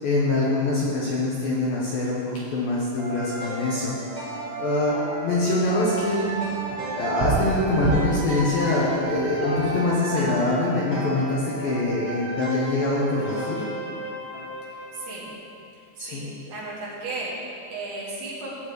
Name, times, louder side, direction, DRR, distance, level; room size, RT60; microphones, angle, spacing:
voice 1, 0.0-2.2 2.5-3.9 4.6-5.0 5.2-6.3 6.9-13.6 16.0-16.3, left 2 dB, 75° left, -6 dB, 2.2 m, -24 dB
sound 1, 3.0-15.3, right 2 dB, 20° right, 1.7 m, -33 dB
sound 2, 5.3-10.1, right 3 dB, 85° right, 4.1 m, -31 dB
voice 2, 14.7-15.3 15.7-18.6, right 2 dB, 65° right, -7 dB, 4.3 m, -35 dB
16.5 x 8.9 x 3.3 m, 2.5 s
omnidirectional pair, 5.6 m